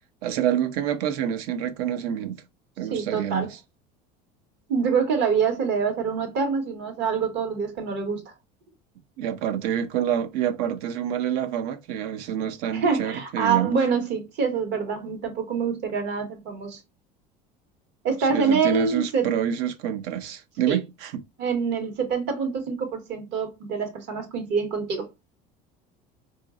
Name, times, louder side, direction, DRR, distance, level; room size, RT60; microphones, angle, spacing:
voice 1, 0.2-2.4 2.8-3.6 9.2-13.8 18.3-21.2, right 10 dB, 80° right, 0.6 m, -27 dB
voice 2, 2.9-3.5 4.7-8.2 12.7-16.8 18.0-19.3 20.7-20.8 21.4-25.1, right 5 dB, 60° right, 1.2 m, -25 dB
4.0 x 2.5 x 2.4 m
supercardioid pair, 100°, 20 cm